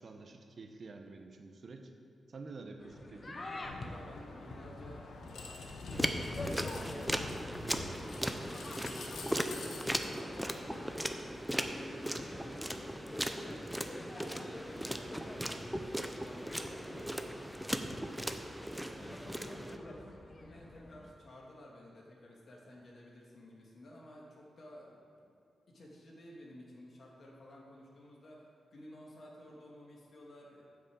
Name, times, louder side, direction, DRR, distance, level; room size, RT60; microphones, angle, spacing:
voice 1, 0.0-1.9 2.3-3.4, right 3 dB, 50° right, 5 dB, 1.0 m, -49 dB
sound 1, 2.8-21.1, left 2 dB, 35° left, 0.9 m, -49 dB
sound 2, 3.6-11.1, left 3 dB, 90° left, 1.1 m, -45 dB
voice 2, 3.8-8.0 8.9-17.5 18.7-25.3 25.7-30.6, left 1 dB, 50° left, -3 dB, 2.4 m, -54 dB
sound 3, 5.9-19.8, equal, 5° right, 0.6 m, -38 dB
9.0 x 6.5 x 7.3 m, 2.5 s
cardioid pair, 95°, 0 cm